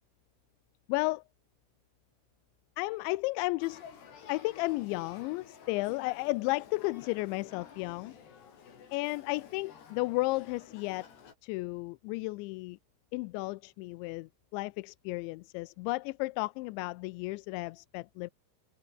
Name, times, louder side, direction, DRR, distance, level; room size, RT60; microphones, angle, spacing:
voice 1, 0.9-1.2 2.8-3.8 4.3-8.1 8.9-11.0 11.4-12.8 13.1-18.3, left 23 dB, 90° left, 2.9 m, -33 dB
Male speech man speaking / Child speech kid speaking / Conversation, 3.6-11.4, left 7 dB, 65° left, 6.1 m, -52 dB
omnidirectional pair, 5.2 m